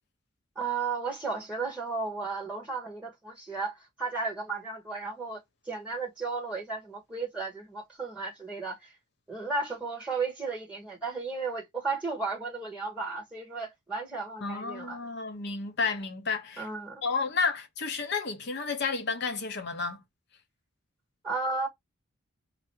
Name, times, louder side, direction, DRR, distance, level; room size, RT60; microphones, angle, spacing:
voice 1, 0.6-8.9 9.3-15.0 16.6-17.0 21.2-21.7, right 4 dB, 5° right, 2.3 m, -34 dB
voice 2, 14.4-16.7 17.0-20.0, left 4 dB, 55° left, 0.9 m, -31 dB
4.8 x 2.0 x 4.5 m
head